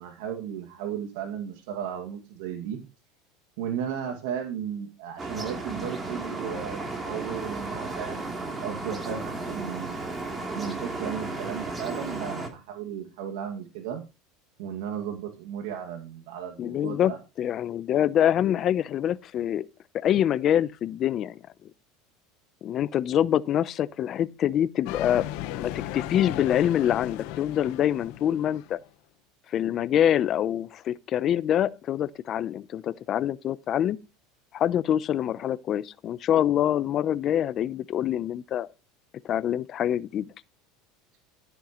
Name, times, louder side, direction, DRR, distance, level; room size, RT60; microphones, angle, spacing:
voice 1, 0.0-2.8 3.6-6.8 7.1-8.3 8.6-10.0 10.5-14.0 14.6-17.2, right 8 dB, 75° right, 2.2 m, -35 dB
sound 1, 5.2-12.5, right 3 dB, 20° right, 3.2 m, -34 dB
voice 2, 16.6-19.7 19.9-21.4 22.6-25.3 25.5-28.8 29.5-34.0 34.5-38.7 39.2-40.3, left 10 dB, 40° left, 0.7 m, -25 dB
sound 2, 24.9-28.8, left 14 dB, 65° left, 1.0 m, -36 dB
13.5 x 8.9 x 3.1 m
supercardioid pair, 120°, 0 cm